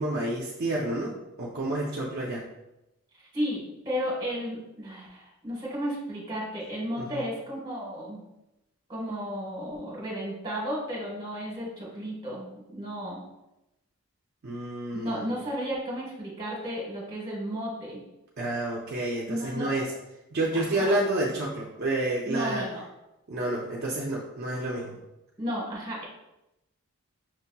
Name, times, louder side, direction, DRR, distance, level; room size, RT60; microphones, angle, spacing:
voice 1, 0.0-2.4 7.0-7.3 14.4-15.2 18.4-19.9 20.3-22.6 23.3-25.0, right 1 dB, 45° right, -4 dB, 0.5 m, -29 dB
voice 2, 3.3-8.2 8.9-13.2 14.9-18.0 19.3-19.9 20.5-20.9 22.3-22.8 25.4-26.1, equal, 20° right, -4 dB, 1.2 m, -33 dB
5.9 x 2.8 x 2.2 m, 0.93 s
head